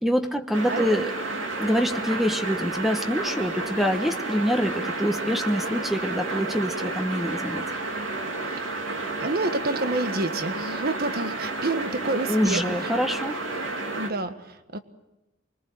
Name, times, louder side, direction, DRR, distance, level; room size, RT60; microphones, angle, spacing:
voice 1, 0.0-1.1 1.6-7.7 12.2-13.4, equal, ahead, 7 dB, 1.1 m, -25 dB
sound 1, 0.5-14.1, right 2 dB, 90° right, 2.8 m, -31 dB
voice 2, 0.7-1.1 9.2-12.9 13.9-14.8, right 2 dB, 55° right, 9 dB, 1.5 m, -29 dB
25.0 x 22.0 x 7.8 m, 0.97 s
head